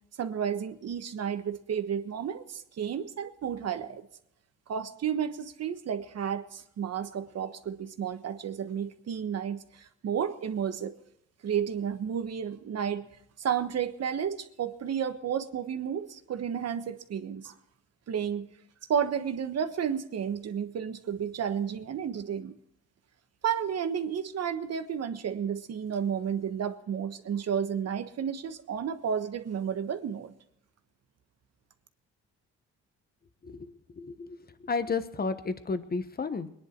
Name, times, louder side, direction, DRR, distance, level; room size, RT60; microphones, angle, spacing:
voice 1, 0.2-4.0 4.7-10.9 11.4-13.1 13.4-17.5 18.1-18.5 18.9-22.5 23.4-30.3, right 8 dB, 55° right, 9 dB, 1.3 m, -32 dB
voice 2, 33.4-34.4 34.7-36.5, left 4 dB, 30° left, 11 dB, 1.3 m, -32 dB
21.5 x 10.5 x 4.6 m, 0.76 s
cardioid pair, 90°, 30 cm